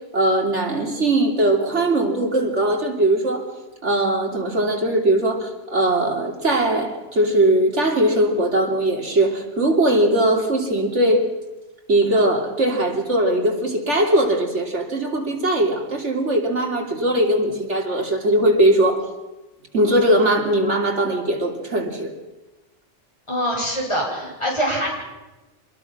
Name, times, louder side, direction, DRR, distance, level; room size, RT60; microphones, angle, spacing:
voice 1, 0.1-3.4 3.8-11.2 11.9-19.0 19.7-22.1, right 1 dB, 75° right, 2 dB, 3.4 m, -20 dB
voice 2, 23.3-24.9, equal, 25° left, -3 dB, 7.8 m, -24 dB
26.0 x 21.0 x 6.1 m, 1.1 s
omnidirectional pair, 1.2 m